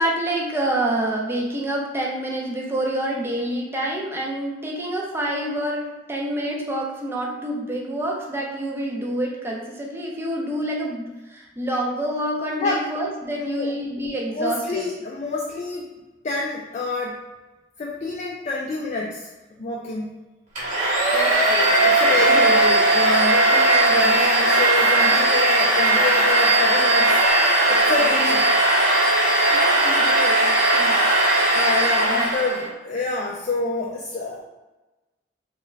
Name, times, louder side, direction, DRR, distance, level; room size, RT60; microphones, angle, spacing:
voice 1, 0.0-14.8 21.1-22.4 29.5-31.1 32.1-32.3, right 1 dB, 15° right, -2 dB, 0.5 m, -27 dB
voice 2, 12.6-12.9 13.6-13.7 14.3-15.9 16.2-17.2 17.8-19.3 19.6-20.1 21.8-28.5 31.5-34.4, left 3 dB, 40° left, -2 dB, 0.3 m, -27 dB
Domestic sounds home sounds, 20.6-32.7, right 2 dB, 45° right, 1.0 m, -18 dB
3.3 x 2.3 x 3.2 m, 1.1 s
head